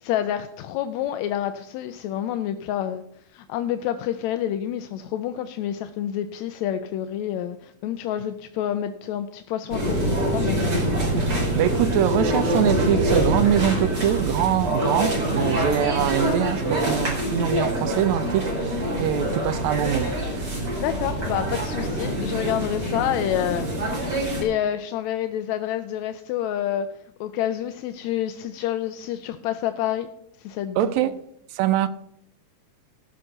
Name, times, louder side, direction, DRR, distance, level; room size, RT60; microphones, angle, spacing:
voice 1, 0.0-3.0 3.3-10.6 20.8-23.7 24.4-26.9 27.2-30.1 30.4-30.9, left 11 dB, 80° left, 1.7 m, -28 dB
sound 1, 9.7-24.4, right 1 dB, 30° right, 4.1 m, -25 dB
voice 2, 11.1-20.5 30.8-31.2 31.5-31.9, right 11 dB, 75° right, 1.8 m, -24 dB
15.5 x 5.9 x 6.6 m
omnidirectional pair, 3.6 m